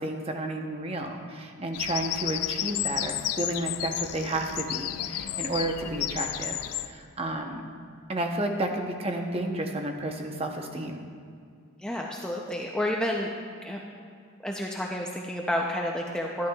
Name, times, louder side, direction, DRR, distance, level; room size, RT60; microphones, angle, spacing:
voice 1, 0.0-6.6 6.8-7.7 8.1-11.0, right 1 dB, 25° right, 3 dB, 0.7 m, -31 dB
Bird vocalization bird call bird song, 1.7-6.9, left 13 dB, 85° left, 0.4 m, -32 dB
voice 2, 11.8-13.3 13.6-13.8 14.4-16.5, left 1 dB, 5° left, -1 dB, 0.4 m, -30 dB
12.0 x 11.5 x 2.3 m, 2.3 s
head